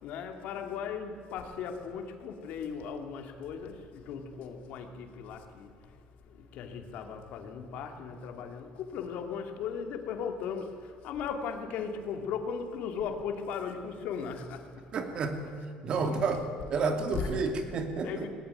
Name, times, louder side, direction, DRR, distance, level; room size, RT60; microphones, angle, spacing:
voice 1, 0.0-6.0 6.2-15.1 15.4-15.5 16.0-17.6 18.0-18.3, left 6 dB, 65° left, 5 dB, 2.8 m, -38 dB
voice 2, 14.9-16.4 16.7-18.3, right 4 dB, 40° right, 6 dB, 2.6 m, -31 dB
20.0 x 19.5 x 9.3 m, 2.3 s
cardioid pair, 150°, 3 cm